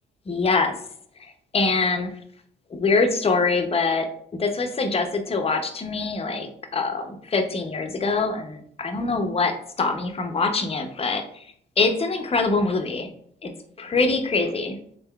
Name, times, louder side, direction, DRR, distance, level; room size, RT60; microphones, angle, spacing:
voice 1, 0.3-0.7 1.5-2.1 2.7-4.1 4.4-11.4 11.8-13.1 13.4-13.5 13.8-14.7, left 3 dB, 30° left, 5 dB, 0.6 m, -24 dB
3.7 x 3.5 x 2.2 m, 0.64 s
cardioid pair, 90°, 20 cm